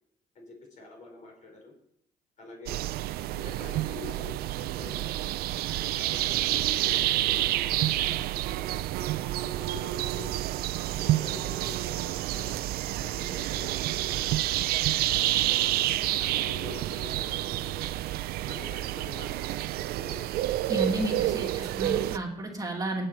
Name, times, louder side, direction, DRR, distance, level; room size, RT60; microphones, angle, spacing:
voice 1, 0.4-1.7 2.4-2.9 3.3-5.3 5.9-8.4 9.4-10.3 10.9-12.5 13.0-14.3 15.1-16.0 16.4-17.9 18.4-19.7 19.9-20.4, left 3 dB, 50° left, 1 dB, 5.3 m, -46 dB
sound 1, 2.7-22.2, right 15 dB, 75° right, 0.5 m, -29 dB
voice 2, 20.7-23.1, right 1 dB, 20° right, 0 dB, 2.3 m, -32 dB
19.0 x 7.8 x 4.6 m, 0.71 s
cardioid pair, 100°, 16 cm